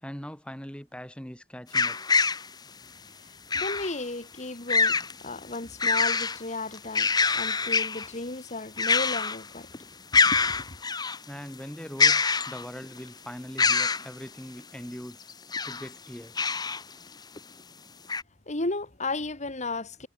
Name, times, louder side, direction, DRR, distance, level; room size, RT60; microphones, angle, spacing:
voice 1, 0.0-2.0 11.3-15.2 15.6-16.4, equal, 5° left, 4.4 m, -41 dB
sound 1, 1.7-2.5 3.5-3.9 4.7-5.1 5.5-6.4 6.7-8.1 8.8-9.5 9.7-9.8 10.1-11.2 12.0-12.9 13.6-14.1 15.3-15.9 16.4-16.8 17.4-17.5 18.1-18.2, left 4 dB, 20° left, 0.9 m, -24 dB
voice 2, 3.5-9.7 10.1-10.8 18.5-20.1, left 2 dB, 40° left, 2.5 m, -34 dB
head